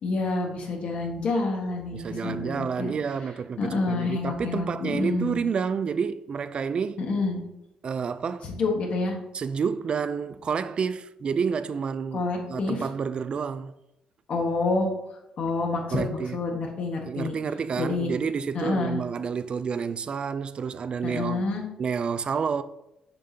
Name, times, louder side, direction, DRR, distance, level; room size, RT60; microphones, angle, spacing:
voice 1, 0.0-2.9 3.6-5.4 7.0-7.4 8.4-9.2 12.1-12.8 14.3-14.9 15.4-17.4 17.8-18.1 18.5-19.0 21.0-21.6, left 3 dB, 60° left, 1.4 m, -28 dB
voice 2, 1.9-7.0 7.8-8.5 9.3-13.7 15.9-16.4 17.0-21.4 21.8-22.6, right 6 dB, 45° right, 0.3 m, -29 dB
6.8 x 5.2 x 2.8 m
cardioid pair, 95°, 2 cm